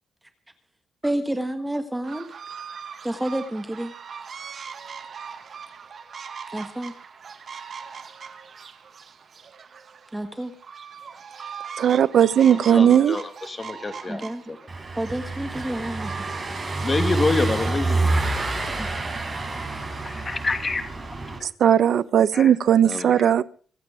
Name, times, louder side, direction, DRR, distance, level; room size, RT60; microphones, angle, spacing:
voice 1, 1.0-2.3 3.0-3.9 6.5-6.9 10.1-10.5 14.1-14.6 15.0-16.3 18.7-19.0, right 1 dB, 10° right, 1.5 m, -30 dB
sound 1, 2.0-17.6, right 6 dB, 45° right, 2.0 m, -41 dB
voice 2, 11.8-13.2 21.6-23.4, right 9 dB, 60° right, 0.9 m, -17 dB
voice 3, 12.5-14.2 14.5-14.6 16.8-18.2 20.0-20.8 22.3-22.5 22.8-23.4, left 3 dB, 25° left, 2.4 m, -27 dB
Car passing by / Engine, 14.7-21.4, right 2 dB, 25° right, 5.4 m, -27 dB
25.5 x 8.7 x 5.0 m
cardioid pair, 130°, 0 cm